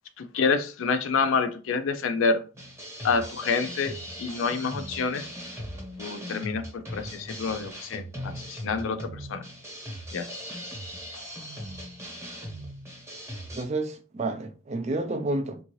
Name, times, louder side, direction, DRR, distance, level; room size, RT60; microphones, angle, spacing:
voice 1, 0.2-2.4 3.0-5.3 6.0-9.4 10.1-10.3, left 5 dB, 75° left, 0.4 m, -28 dB
sound 1, 2.5-13.6, equal, 15° right, 1.0 m, -39 dB
voice 2, 13.5-15.6, right 2 dB, 35° right, 0.4 m, -30 dB
3.6 x 2.7 x 3.0 m
head